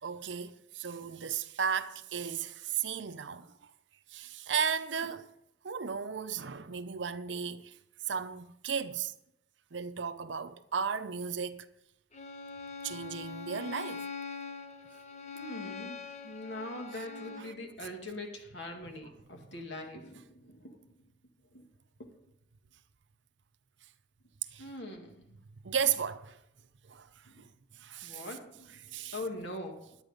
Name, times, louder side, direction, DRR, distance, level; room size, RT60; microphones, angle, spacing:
voice 1, 0.0-3.6 4.1-5.3 5.6-7.8 8.1-9.1 9.7-11.7 12.8-14.1 17.4-17.5 24.5-24.7 25.6-26.4 26.8-27.5 27.7-28.3 28.8-29.2, right 7 dB, 75° right, 0.6 m, -35 dB
Bowed string instrument, 12.1-17.6, left 5 dB, 35° left, 0.8 m, -43 dB
voice 2, 15.3-20.7 21.5-21.7 24.6-25.3 27.3-27.4 28.0-28.8 29.1-29.8, left 1 dB, 70° left, 2.2 m, -42 dB
11.0 x 9.0 x 5.2 m
head